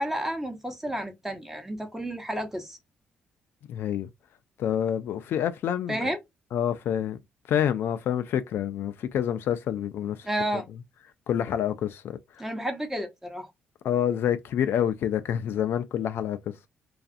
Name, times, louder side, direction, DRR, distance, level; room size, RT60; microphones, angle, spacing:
voice 1, 0.0-2.8 5.9-6.2 10.2-10.7 12.4-13.5, right 1 dB, 10° right, 0.8 m, -31 dB
voice 2, 3.7-4.1 4.6-6.1 6.5-7.2 7.5-10.3 10.5-10.6 11.3-12.5 13.8-16.5, left 9 dB, 70° left, 0.3 m, -27 dB
2.4 x 2.4 x 2.4 m
supercardioid pair, 70°, 4 cm